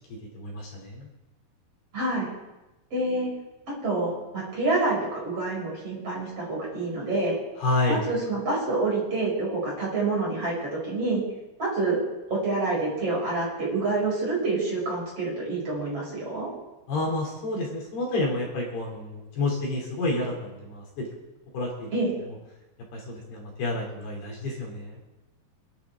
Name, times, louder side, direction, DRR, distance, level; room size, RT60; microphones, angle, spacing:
voice 1, 0.3-1.1 7.6-8.0 16.9-21.1 21.5-21.9 22.9-25.0, left 2 dB, 60° left, -2 dB, 4.6 m, -29 dB
voice 2, 1.9-2.3 2.9-3.3 3.8-7.4 7.9-11.2 11.6-12.0 12.3-16.5 21.9-22.1, right 2 dB, 30° right, -5 dB, 6.8 m, -27 dB
27.0 x 11.5 x 3.6 m, 1.0 s
omnidirectional pair, 5.3 m